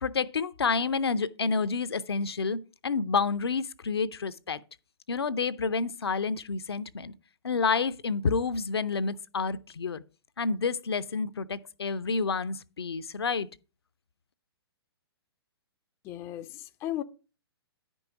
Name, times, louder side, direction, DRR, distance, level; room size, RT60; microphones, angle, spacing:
voice 1, 0.0-4.6 5.1-7.1 7.4-10.0 10.4-13.5, left 4 dB, 70° left, 0.5 m, -29 dB
voice 2, 16.0-17.0, left 13 dB, 20° left, 0.4 m, -35 dB
10.5 x 5.4 x 4.7 m
figure-of-eight pair, 120°, 14 cm